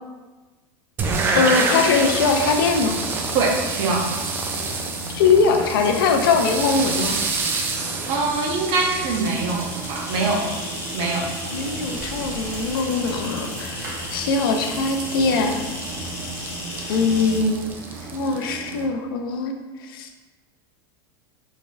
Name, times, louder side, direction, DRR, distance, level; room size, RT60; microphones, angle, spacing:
sound 1, 1.0-18.9, right 4 dB, 20° right, 0.3 m, -29 dB
Bicycle, 1.2-18.7, equal, 65° right, 1.0 m, -38 dB
voice 1, 1.3-3.0 5.1-7.2 11.5-15.7 16.9-17.7 18.1-19.5 19.8-20.1, left 4 dB, 80° left, 4 dB, 0.5 m, -21 dB
voice 2, 3.3-4.0 8.1-10.4 10.9-11.3, right 3 dB, 45° right, 0 dB, 0.7 m, -23 dB
sound 2, 9.0-17.4, left 2 dB, 25° left, 0.6 m, -36 dB
3.9 x 3.5 x 2.5 m, 1.3 s
supercardioid pair, 160°, 11 cm